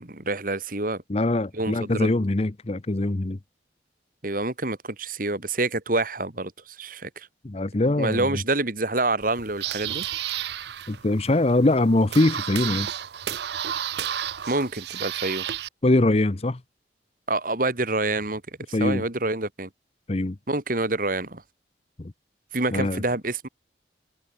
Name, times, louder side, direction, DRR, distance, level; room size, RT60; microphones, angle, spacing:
voice 1, 0.0-1.0 1.5-2.1 4.2-7.3 8.0-10.0 14.5-15.5 17.3-18.4 18.7-19.7 20.5-21.4 22.5-23.5, right 2 dB, 50° right, 2.9 m, -27 dB
voice 2, 1.1-3.4 7.4-8.4 10.9-12.9 15.8-16.6 18.7-19.0 20.1-20.4 22.0-22.1 22.7-23.0, left 2 dB, 35° left, 0.7 m, -22 dB
sound 1, 9.2-15.7, right 10 dB, 65° right, 0.6 m, -32 dB
head